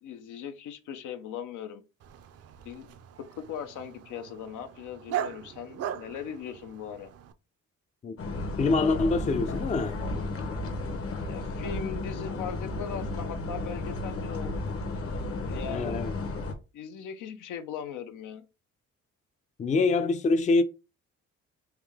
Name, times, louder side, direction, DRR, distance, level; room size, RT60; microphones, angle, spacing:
voice 1, 0.0-1.8 2.6-2.9 3.4-7.1 11.3-14.6 15.0-16.0 16.7-18.4, left 8 dB, 85° left, 0.7 m, -39 dB
Dog, 2.0-7.3, right 10 dB, 55° right, 0.5 m, -39 dB
sound 1, 8.2-16.5, left 2 dB, 50° left, 0.9 m, -33 dB
voice 2, 8.6-10.0 15.7-16.1 19.6-20.6, left 3 dB, 25° left, 0.4 m, -25 dB
3.5 x 2.7 x 3.4 m
cardioid pair, 90°, 30 cm